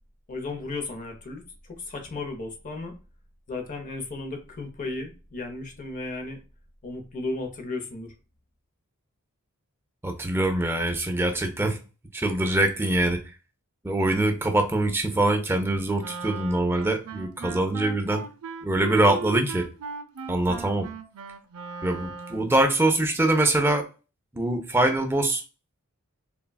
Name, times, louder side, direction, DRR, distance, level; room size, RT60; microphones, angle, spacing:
voice 1, 0.3-2.9 3.5-6.4 6.8-8.1, left 3 dB, 35° left, 5 dB, 0.6 m, -34 dB
voice 2, 10.0-11.8 12.1-13.2 13.8-18.2 18.6-19.7 20.3-20.9 21.8-23.9 24.3-25.4, right 2 dB, 10° right, 5 dB, 0.4 m, -23 dB
Wind instrument woodwind instrument, 16.0-22.6, right 5 dB, 75° right, 0.4 m, -38 dB
3.3 x 2.2 x 2.2 m, 0.33 s
head